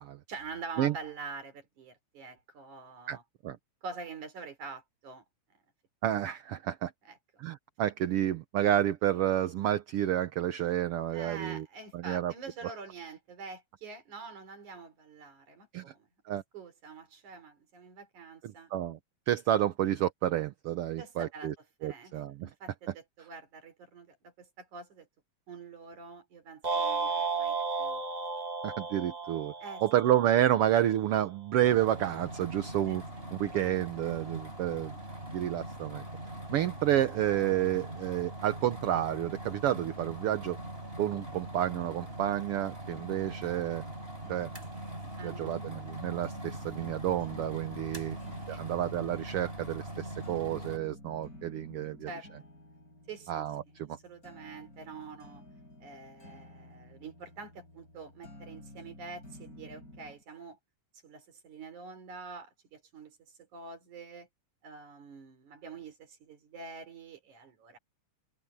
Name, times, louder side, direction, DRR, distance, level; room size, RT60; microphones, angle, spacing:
voice 1, 0.3-3.2 3.8-5.2 7.1-7.2 11.1-16.1 16.5-18.7 21.0-22.1 22.6-25.1 25.5-28.0 29.6-29.8 32.9-33.0 45.2-45.6 48.5-48.6 52.1-52.3 53.1-53.4 54.0-55.4 55.8-60.6 61.0-64.3 64.6-67.8, right 4 dB, 85° right, 5.2 m, -46 dB
voice 2, 6.0-6.9 7.4-11.6 11.9-12.3 15.7-15.8 16.3-16.4 18.4-19.0 19.3-21.5 21.8-22.5 28.6-29.5 29.8-33.0 33.3-34.9 35.3-36.0 36.5-40.6 41.0-43.8 44.3-44.5 45.2-48.2 48.5-52.1 53.3-54.0, right 12 dB, 65° right, 1.6 m, -30 dB
sound 1, 26.6-31.0, right 4 dB, 50° right, 0.5 m, -33 dB
sound 2, 31.6-50.8, right 1 dB, 20° right, 7.0 m, -42 dB
sound 3, 44.2-60.2, left 1 dB, 30° left, 6.4 m, -53 dB
open air
omnidirectional pair, 3.3 m